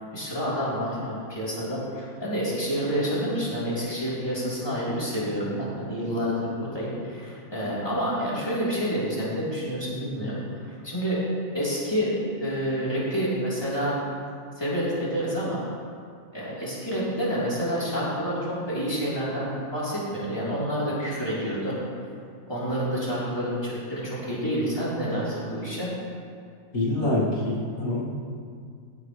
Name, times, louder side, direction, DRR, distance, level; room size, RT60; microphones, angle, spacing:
voice 1, 0.1-10.4 10.7-11.2 11.5-13.9 14.6-15.6 16.3-21.7 22.5-25.9, equal, 15° left, -9 dB, 3.7 m, -28 dB
voice 2, 26.7-28.1, left 2 dB, 75° left, -7 dB, 2.7 m, -25 dB
16.0 x 11.5 x 3.3 m, 2.2 s
omnidirectional pair, 1.5 m